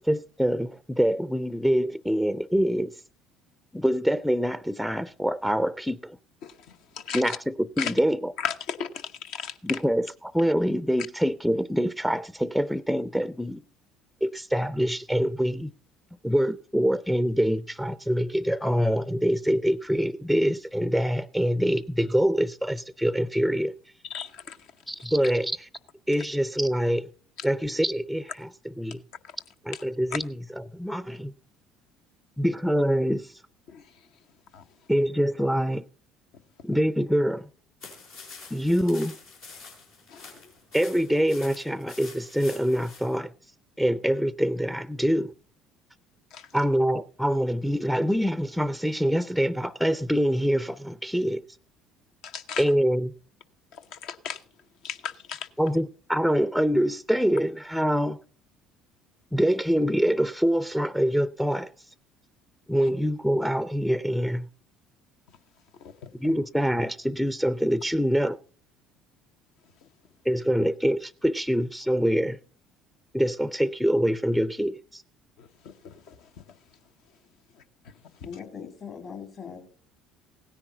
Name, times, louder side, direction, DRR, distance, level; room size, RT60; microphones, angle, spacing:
voice 1, 0.0-3.0 3.7-6.2 7.1-8.3 9.6-13.6 14.2-15.7 16.2-23.7 24.9-25.7 26.1-27.1 27.4-29.0 29.6-31.3 32.4-33.4 34.9-35.8 36.6-37.5 38.5-39.1 40.7-43.3 43.8-45.3 46.5-51.4 52.6-53.1 55.6-58.2 59.3-61.7 62.7-64.5 66.2-68.4 70.3-72.4 73.1-75.0, equal, ahead, 0.5 m, -25 dB
voice 2, 7.1-7.4 7.8-7.9 8.4-9.5 24.1-24.6 33.7-33.8 34.5-34.6 40.1-40.2 46.3-46.5 52.2-52.6 53.9-54.4 54.8-55.5 66.0-66.1 75.4-75.5 75.8-76.2, left 7 dB, 65° left, 0.9 m, -35 dB
sound 1, 37.8-43.2, left 4 dB, 80° left, 4.7 m, -46 dB
voice 3, 78.2-79.6, left 6 dB, 50° left, 2.6 m, -40 dB
16.5 x 10.0 x 3.9 m
hypercardioid pair, 60°, 0 cm